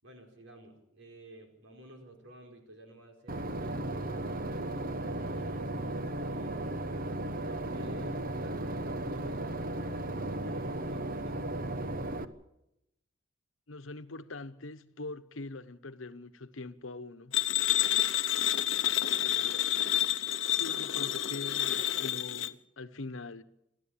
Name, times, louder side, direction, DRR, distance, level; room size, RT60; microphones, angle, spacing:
voice 1, 0.0-6.7 7.4-10.0 10.4-11.4 19.3-19.7, equal, 80° right, 5.0 m, -52 dB
Boat Water vehicle / Engine, 3.3-12.2, right 1 dB, 45° right, 1.1 m, -35 dB
voice 2, 13.7-17.3 20.6-23.4, left 2 dB, 90° left, 1.1 m, -43 dB
sound 1, 17.3-22.5, left 12 dB, 70° left, 0.7 m, -29 dB
28.0 x 12.5 x 8.7 m
head